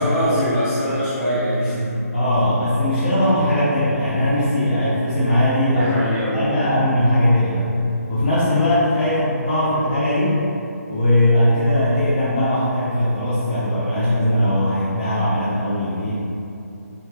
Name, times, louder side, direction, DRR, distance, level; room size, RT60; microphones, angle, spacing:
voice 1, 0.0-2.1 5.7-6.6, equal, 15° left, -14 dB, 1.0 m, -22 dB
voice 2, 2.1-5.9 6.3-7.7 8.1-10.4 10.9-16.1, left 1 dB, 30° left, -10 dB, 0.5 m, -19 dB
3.1 x 2.8 x 3.3 m, 2.8 s
hypercardioid pair, 170°, 9 cm